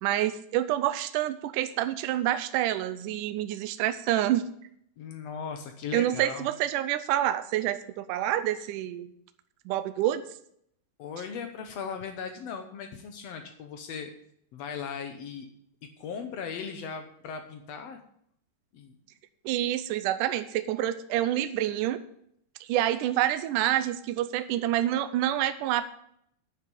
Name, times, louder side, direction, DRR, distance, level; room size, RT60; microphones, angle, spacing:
voice 1, 0.0-4.4 5.9-9.1 9.7-10.2 19.5-22.0 22.6-25.9, right 13 dB, 80° right, 11 dB, 1.9 m, -27 dB
voice 2, 5.0-6.5 11.0-14.1 14.5-15.5 15.8-18.0 18.7-18.9, left 6 dB, 80° left, 6 dB, 1.4 m, -38 dB
9.8 x 6.2 x 8.7 m, 0.71 s
omnidirectional pair, 4.2 m